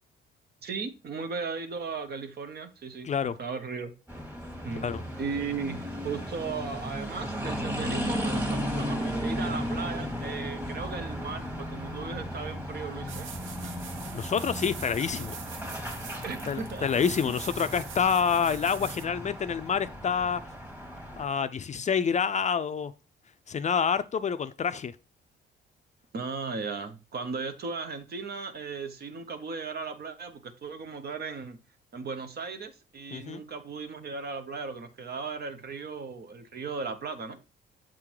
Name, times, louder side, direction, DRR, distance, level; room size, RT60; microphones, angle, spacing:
voice 1, 0.6-3.9 4.6-4.9 5.2-13.3 16.2-16.9 17.2-17.3 26.1-31.6 31.9-37.4, right 5 dB, 55° right, 1.1 m, -36 dB
voice 2, 3.0-3.4 4.8-5.0 14.1-15.4 16.5-20.4 21.2-22.9 23.5-24.9 33.1-33.4, left 6 dB, 35° left, 0.4 m, -27 dB
sound 1, 4.1-21.3, equal, 10° right, 1.6 m, -35 dB
sound 2, 13.1-19.1, right 7 dB, 80° right, 0.8 m, -43 dB
7.5 x 3.7 x 4.6 m
cardioid pair, 90°, 20 cm